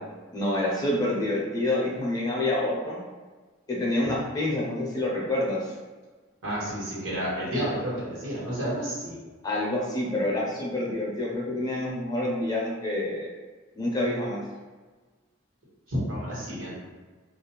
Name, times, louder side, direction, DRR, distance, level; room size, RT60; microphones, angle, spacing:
voice 1, 0.3-3.0 3.7-5.7 9.4-13.3 13.7-14.4, left 1 dB, 20° left, -4 dB, 0.5 m, -27 dB
voice 2, 6.4-9.1 15.9-16.7, equal, 85° right, -8 dB, 1.2 m, -30 dB
2.4 x 2.0 x 2.9 m, 1.3 s
head